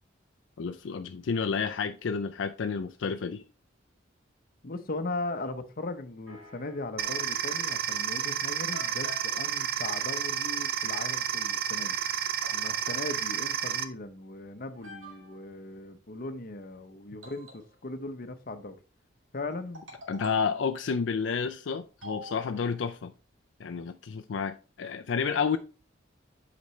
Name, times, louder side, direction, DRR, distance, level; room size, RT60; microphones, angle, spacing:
voice 1, 0.6-3.4 20.1-23.1 23.6-25.6, left 5 dB, 75° left, 0.4 m, -30 dB
voice 2, 4.6-12.0 12.5-18.8 19.3-19.8, left 2 dB, 50° left, 0.8 m, -38 dB
sound 1, 6.3-7.5 8.2-8.3 8.7-9.3 11.9-12.0 12.4-13.0 14.1-14.2 14.7-15.5 17.2-18.0 19.5-20.5 22.0-22.9, left 1 dB, 85° right, 2.4 m, -47 dB
sound 2, 7.0-13.8, right 9 dB, 55° right, 0.6 m, -31 dB
8.4 x 5.1 x 3.2 m
head